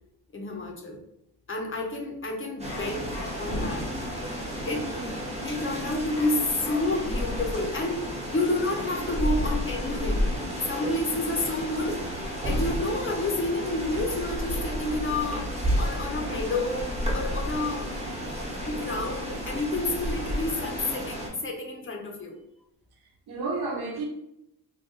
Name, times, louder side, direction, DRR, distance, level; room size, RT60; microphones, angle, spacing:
voice 1, 0.3-1.0 1.5-3.1 3.4-3.9 4.6-5.0 5.4-8.0 8.3-10.3 10.6-12.0 12.4-17.9 18.7-22.4, left 2 dB, 30° left, 0.6 m, -29 dB
sound 1, 2.6-21.3, equal, 15° right, 0.9 m, -31 dB
sound 2, 2.7-3.7 6.1-7.2, left 3 dB, 85° left, 0.8 m, -43 dB
voice 2, 4.7-5.1 23.3-24.1, right 3 dB, 65° right, 0.9 m, -32 dB
2.6 x 2.2 x 3.8 m
cardioid pair, 100°, 40 cm